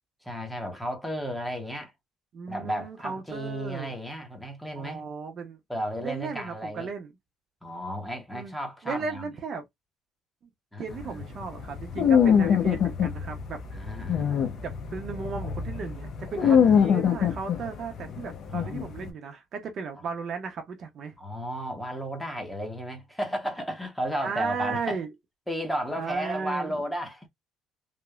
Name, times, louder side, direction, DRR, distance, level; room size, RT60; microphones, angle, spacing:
voice 1, 0.2-1.9 2.5-5.1 5.7-6.9 7.6-9.3 10.7-11.2 13.7-14.5 16.4-16.9 18.4-19.0 21.2-25.0 25.5-27.3, equal, 5° left, 0.7 m, -34 dB
voice 2, 2.3-3.9 4.7-5.6 6.0-7.1 8.3-8.5 8.8-9.6 10.8-13.6 14.6-21.2 24.2-25.1 26.0-26.8, right 5 dB, 45° right, 0.6 m, -35 dB
sound 1, 10.9-19.1, left 7 dB, 50° left, 0.6 m, -24 dB
2.9 x 2.0 x 2.2 m
cardioid pair, 145°, 0 cm